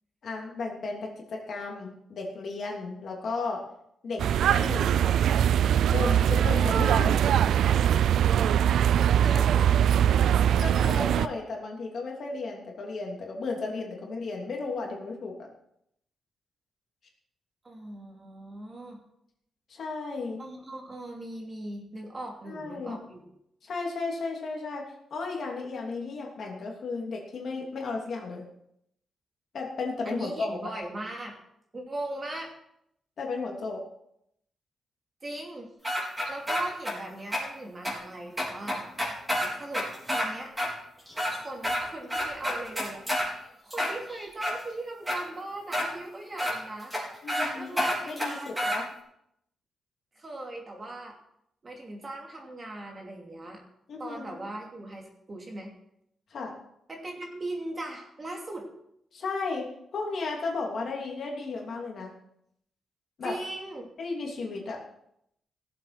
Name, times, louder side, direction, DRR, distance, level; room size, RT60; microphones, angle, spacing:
voice 1, 0.2-3.6 4.0-4.9 5.9-7.2 10.6-15.5 19.7-20.4 22.5-23.0 23.6-24.8 25.1-28.4 29.5-30.6 33.2-33.8 47.2-48.8 53.9-54.2 56.3-56.5 59.1-59.7 59.9-62.1 63.2-63.3 64.0-64.8, left 3 dB, 50° left, 0 dB, 3.0 m, -34 dB
sound 1, 4.2-11.3, right 9 dB, 80° right, 0.4 m, -22 dB
voice 2, 9.1-9.8 17.6-19.0 20.4-23.2 30.0-31.3 31.7-32.5 35.2-35.7 36.0-38.8 39.5-39.9 40.1-40.5 41.2-46.9 47.5-48.8 50.1-51.2 51.6-53.6 54.0-55.7 56.9-58.7 63.2-63.9, right 1 dB, 25° right, 0 dB, 2.7 m, -39 dB
sound 2, 35.8-36.9 37.3-37.4 37.8-37.9 38.4-40.3 40.6-40.7 41.1-41.8 42.1-43.3 43.7-44.5 45.1-45.2 45.7-45.9 46.4-46.5 46.9-47.0 47.3-47.5 47.8-48.8, equal, 5° right, 4.2 m, -28 dB
17.0 x 7.7 x 6.1 m, 0.75 s
wide cardioid pair, 165°, 0 cm